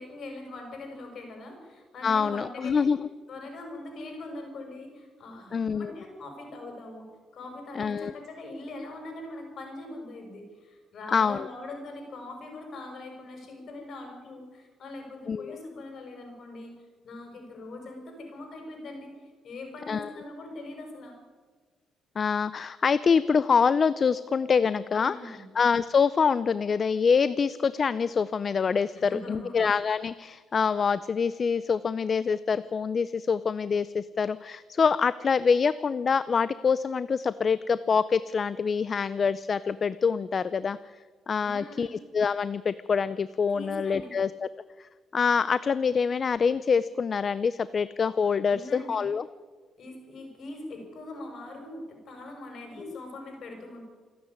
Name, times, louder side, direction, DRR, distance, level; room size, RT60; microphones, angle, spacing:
voice 1, 0.0-2.9 3.3-7.1 7.3-16.7 17.0-19.1 19.4-21.2 24.9-25.4 28.9-29.7 41.4-42.0 43.5-44.1 48.5-49.0 49.8-53.8, left 2 dB, 60° left, 3 dB, 6.4 m, -42 dB
voice 2, 2.0-3.0 5.5-5.9 7.8-8.1 11.1-11.4 15.3-15.6 19.9-20.1 22.2-40.8 41.3-44.5 45.1-49.3 52.8-53.0, left 6 dB, 45° left, 16 dB, 0.6 m, -25 dB
28.0 x 9.6 x 9.6 m, 1.5 s
cardioid pair, 90°, 0 cm